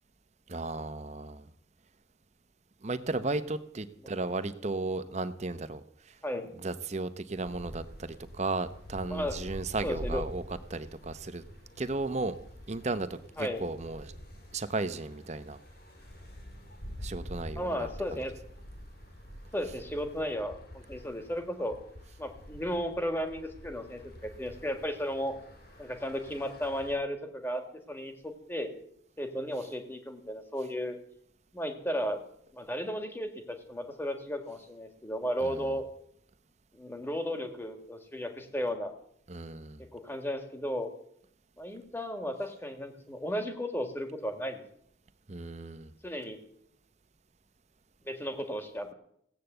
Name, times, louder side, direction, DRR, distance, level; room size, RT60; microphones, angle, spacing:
voice 1, 0.5-1.5 2.8-5.8 6.1-6.2 6.6-10.4 10.7-11.4 11.8-12.3 12.7-14.1 14.5-15.6 17.0-18.2 35.4-35.6 39.3-39.8 45.3-45.9, right 3 dB, 35° right, 12 dB, 0.8 m, -35 dB
sound 1, 7.4-27.0, equal, 50° left, 3.1 m, -47 dB
voice 2, 9.8-10.2 13.4-13.6 17.6-18.3 19.5-21.8 22.2-25.3 25.8-27.6 27.9-28.7 29.2-31.0 31.5-32.2 32.5-35.8 36.7-38.9 39.9-40.9 41.6-44.6 46.0-46.4 48.1-48.9, equal, 10° left, 5 dB, 1.6 m, -34 dB
16.5 x 8.3 x 7.9 m, 0.73 s
head